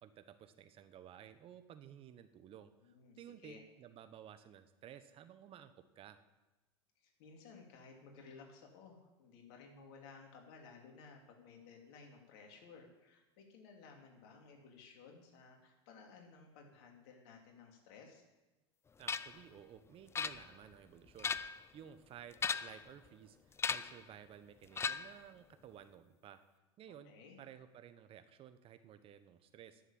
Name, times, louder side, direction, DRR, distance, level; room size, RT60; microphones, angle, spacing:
voice 1, 0.0-6.2 19.0-26.4 26.8-27.1 27.4-29.8, right 9 dB, 40° right, 11 dB, 1.1 m, -55 dB
voice 2, 2.8-3.6 7.0-18.2 26.9-27.4, left 5 dB, 65° left, 2 dB, 2.9 m, -57 dB
sound 1, 19.1-19.4 20.1-20.7 21.1-21.7 22.3-22.9 23.6-24.0 24.7-25.2, left 5 dB, 20° left, 0.5 m, -37 dB
10.5 x 7.2 x 8.8 m, 1.1 s
hypercardioid pair, 85°, 14 cm